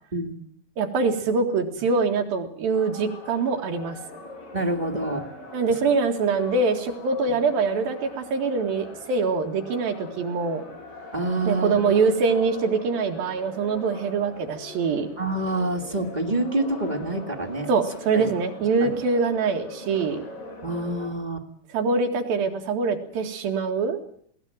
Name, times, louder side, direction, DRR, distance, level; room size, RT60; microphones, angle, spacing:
voice 1, 0.8-4.0 5.5-10.6 11.5-15.1 17.7-20.2 21.7-24.0, right 4 dB, 70° right, 4 dB, 3.8 m, -24 dB
sound 1, 2.7-21.1, left 2 dB, 65° left, 8.3 m, -41 dB
voice 2, 4.5-5.3 11.1-11.8 15.2-17.7 18.1-18.3 18.8-18.9 20.6-21.5, right 2 dB, 30° right, 1 dB, 0.7 m, -27 dB
20.5 x 17.5 x 9.0 m, 0.63 s
omnidirectional pair, 4.4 m